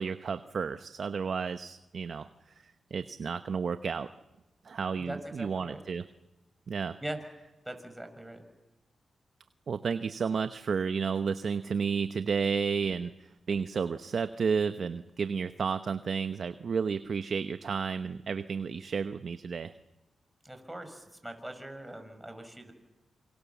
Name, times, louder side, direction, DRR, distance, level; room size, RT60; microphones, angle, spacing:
voice 1, 0.0-2.3 2.9-4.1 4.6-6.0 6.7-7.0 9.7-13.1 13.5-19.7, right 6 dB, 65° right, 10 dB, 0.9 m, -32 dB
voice 2, 5.0-5.8 7.0-7.2 7.6-8.4 20.4-22.7, right 1 dB, 10° right, 7 dB, 6.2 m, -41 dB
27.5 x 24.5 x 7.2 m, 1.1 s
cardioid pair, 60°, 0 cm